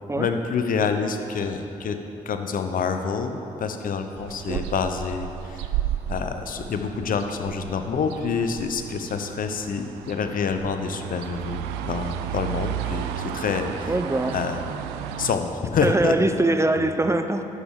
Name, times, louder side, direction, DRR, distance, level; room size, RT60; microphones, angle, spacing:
voice 1, 0.2-2.0 2.3-5.7 6.1-13.9 14.3-14.6 15.2-16.1, left 5 dB, 55° left, 7 dB, 0.8 m, -27 dB
sound 1, 4.1-15.4, right 10 dB, 80° right, 0.4 m, -33 dB
voice 2, 13.9-14.4 15.8-17.5, right 2 dB, 15° right, 8 dB, 0.6 m, -22 dB
11.0 x 7.3 x 4.9 m, 2.9 s
hypercardioid pair, 45°, 17 cm